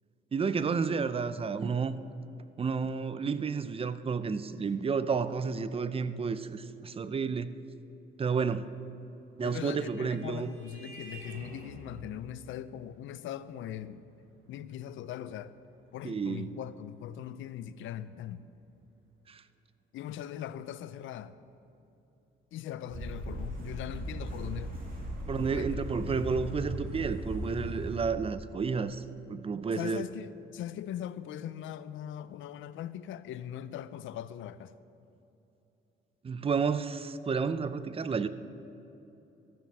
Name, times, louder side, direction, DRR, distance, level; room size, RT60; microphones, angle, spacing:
voice 1, 0.3-2.0 2.6-7.5 8.2-8.6 9.4-10.5 16.0-16.5 19.3-19.4 25.3-30.0 36.2-38.3, right 5 dB, 30° right, 0.5 m, -31 dB
Vehicle horn car horn honking, 9.1-18.1, right 2 dB, 85° right, 2.1 m, -53 dB
voice 2, 9.4-14.0 14.5-15.5 15.9-18.5 19.9-21.3 22.5-24.7 25.5-26.2 29.7-34.7, left 10 dB, 80° left, 0.5 m, -40 dB
sound 1, 22.9-28.0, equal, 45° right, 2.6 m, -38 dB
13.5 x 7.3 x 6.1 m
cardioid pair, 90°, 20 cm